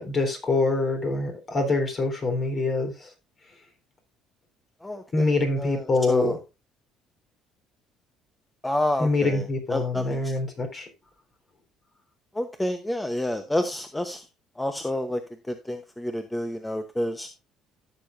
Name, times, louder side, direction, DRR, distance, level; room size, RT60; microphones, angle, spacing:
voice 1, 0.0-3.1 5.1-6.4 9.0-10.9, left 3 dB, 40° left, 3.8 m, -25 dB
voice 2, 4.8-6.4 8.6-10.3 12.3-14.2 14.6-17.3, left 1 dB, 10° left, 0.9 m, -29 dB
14.0 x 6.8 x 2.6 m
supercardioid pair, 95°, 0 cm